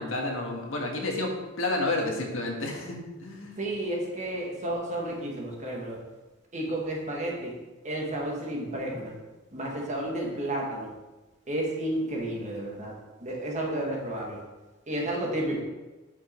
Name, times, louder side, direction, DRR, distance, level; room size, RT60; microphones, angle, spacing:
voice 1, 0.0-3.6, left 2 dB, 65° left, 1 dB, 1.5 m, -30 dB
voice 2, 3.6-6.0 6.5-7.6 7.8-9.2 9.5-10.9 11.5-12.9 13.2-14.4 14.9-15.6, right 1 dB, 35° right, -1 dB, 1.6 m, -31 dB
9.1 x 5.1 x 4.4 m, 1.1 s
head